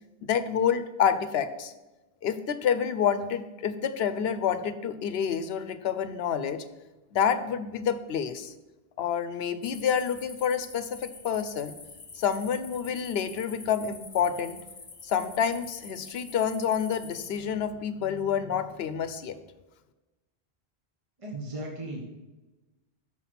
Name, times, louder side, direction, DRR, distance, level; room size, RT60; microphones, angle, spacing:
voice 1, 0.2-1.7 2.2-6.6 7.1-8.5 9.0-11.7 12.2-14.6 15.0-19.3, left 7 dB, 75° left, 11 dB, 0.9 m, -28 dB
sound 1, 9.6-17.4, left 4 dB, 30° left, 0.5 m, -47 dB
voice 2, 21.2-22.2, right 1 dB, 30° right, -2 dB, 1.2 m, -36 dB
6.4 x 5.7 x 5.9 m, 1.1 s
omnidirectional pair, 1.1 m